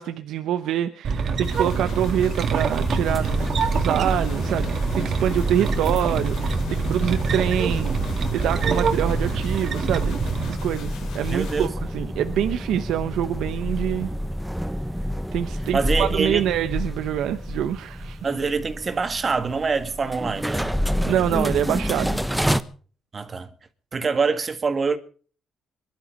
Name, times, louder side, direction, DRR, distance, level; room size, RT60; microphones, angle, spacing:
voice 1, 0.0-10.2 10.4-14.1 15.3-18.2 21.0-22.2, right 10 dB, 85° right, 1.0 m, -26 dB
sound 1, 1.0-10.5, right 5 dB, 60° right, 2.0 m, -25 dB
sound 2, 1.4-11.7, left 6 dB, 80° left, 3.3 m, -40 dB
sound 3, 2.8-22.6, equal, 5° right, 1.1 m, -29 dB
voice 2, 11.3-11.7 15.7-16.5 18.2-20.7 23.1-23.5 23.9-25.0, right 4 dB, 35° right, 2.0 m, -25 dB
22.5 x 12.0 x 5.3 m
cardioid pair, 90°, 0 cm